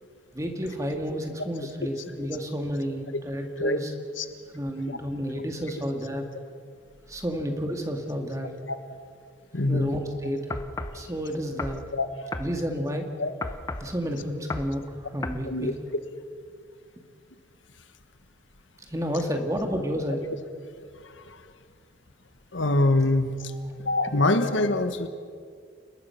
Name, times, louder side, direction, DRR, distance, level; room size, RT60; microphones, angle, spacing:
voice 1, 0.3-3.9 4.5-6.3 7.1-8.5 9.6-10.6 10.9-11.8 12.4-13.1 13.8-15.8 18.9-20.3 23.8-24.2, equal, 15° right, 4 dB, 2.1 m, -31 dB
voice 2, 9.5-10.0 11.9-12.1 13.2-13.3 15.5-15.7 21.2-21.4 22.5-23.4 23.8-25.1, left 2 dB, 85° left, 9 dB, 1.5 m, -24 dB
sound 1, 10.5-11.0 11.6-11.8 12.3-12.5 13.4-13.9 14.5-14.7 15.2-15.4, left 2 dB, 15° left, 0.9 m, -33 dB
30.0 x 20.0 x 5.9 m, 2.2 s
head